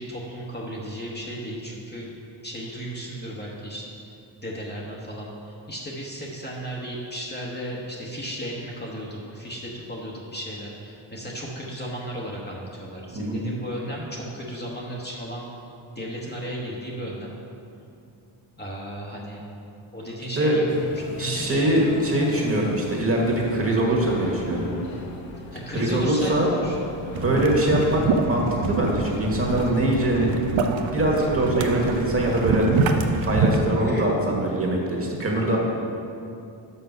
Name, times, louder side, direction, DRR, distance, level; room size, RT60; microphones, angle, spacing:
voice 1, 0.0-2.1 2.4-3.8 4.4-15.5 16.0-17.3 18.6-19.4 19.9-20.9 21.2-21.7 25.5-26.8 33.8-34.1, equal, 20° left, -4 dB, 1.0 m, -34 dB
sound 1, 20.7-28.0, left 3 dB, 85° left, 0.9 m, -39 dB
voice 2, 21.2-24.7 25.7-26.5 27.1-30.3 30.9-32.7 33.2-35.6, right 1 dB, 30° right, -2 dB, 1.6 m, -23 dB
sound 2, 27.1-33.6, right 4 dB, 80° right, 0.7 m, -26 dB
6.5 x 5.7 x 5.3 m, 2.6 s
cardioid pair, 100°, 46 cm